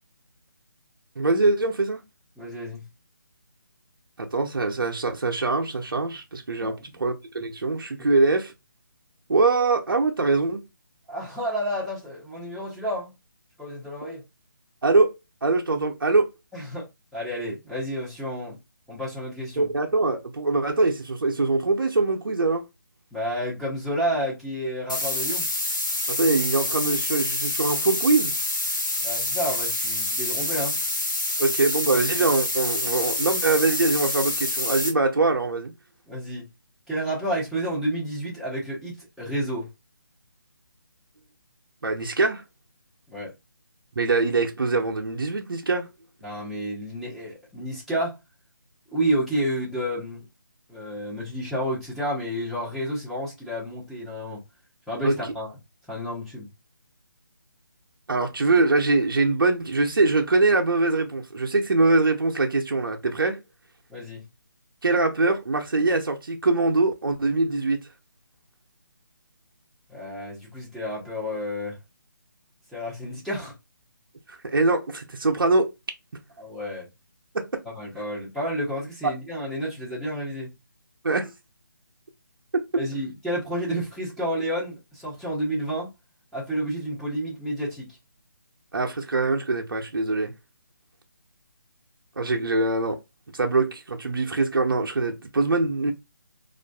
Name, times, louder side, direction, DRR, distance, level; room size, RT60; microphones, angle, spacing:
voice 1, 1.2-2.0 4.2-8.5 9.3-10.6 14.8-15.1 15.4-16.3 19.6-22.6 26.1-28.4 31.4-35.7 41.8-42.4 44.0-45.9 55.0-55.1 58.1-63.4 64.8-67.8 74.4-75.7 77.3-77.6 81.0-81.3 88.7-90.3 92.2-93.0 93.3-95.9, right 3 dB, 85° right, 0.6 m, -23 dB
voice 2, 2.4-2.8 6.6-6.8 11.1-13.1 13.6-14.2 16.5-16.9 17.1-18.6 18.9-19.7 23.1-25.4 29.0-30.8 36.1-36.5 36.9-39.7 43.1-43.3 46.2-48.2 48.9-50.3 50.7-54.4 54.9-55.5 55.9-56.5 63.9-64.2 69.9-71.7 72.7-73.5 76.4-76.9 77.8-80.5 82.8-85.9 86.3-87.9, equal, ahead, 0.7 m, -30 dB
sound 1, 24.9-34.9, left 2 dB, 65° left, 1.1 m, -27 dB
2.5 x 2.4 x 2.2 m
figure-of-eight pair, 155°, 11 cm